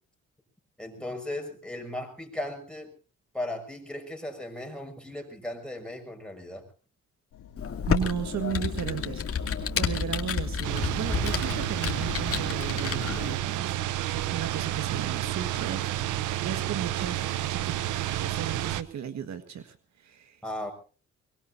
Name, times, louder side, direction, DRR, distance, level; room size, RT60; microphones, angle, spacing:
voice 1, 0.8-2.9 3.3-6.6 20.4-20.7, left 1 dB, 5° left, 3 dB, 5.9 m, -36 dB
sound 1, 7.3-13.4, left 6 dB, 90° left, 2.7 m, -47 dB
Computer keyboard, 7.6-13.4, left 6 dB, 50° left, 2.4 m, -30 dB
voice 2, 7.9-13.7 14.0-17.9 18.2-20.4, right 8 dB, 65° right, 10 dB, 1.7 m, -35 dB
sound 2, 10.6-18.8, right 13 dB, 80° right, 0.9 m, -30 dB
24.0 x 21.5 x 2.7 m, 0.37 s
cardioid pair, 90°, 30 cm